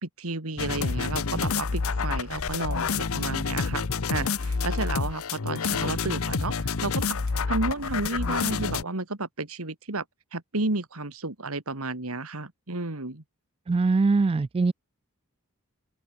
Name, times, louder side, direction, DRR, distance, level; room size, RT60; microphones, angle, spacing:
voice 1, 0.0-3.8 4.1-7.2 7.5-10.0 10.3-13.2, right 2 dB, 80° right, 2.5 m, -32 dB
sound 1, 0.6-8.8, left 5 dB, 70° left, 0.8 m, -28 dB
voice 2, 13.7-14.7, right 3 dB, 25° right, 0.3 m, -22 dB
open air
head